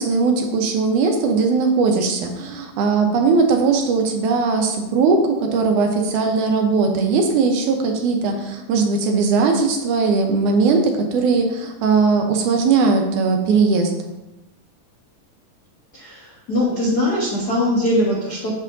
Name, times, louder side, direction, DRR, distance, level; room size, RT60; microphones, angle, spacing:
voice 1, 0.0-13.9, right 4 dB, 75° right, 4 dB, 2.1 m, -19 dB
voice 2, 15.9-18.5, left 1 dB, 80° left, -5 dB, 0.8 m, -21 dB
7.6 x 7.4 x 2.6 m, 0.97 s
omnidirectional pair, 3.9 m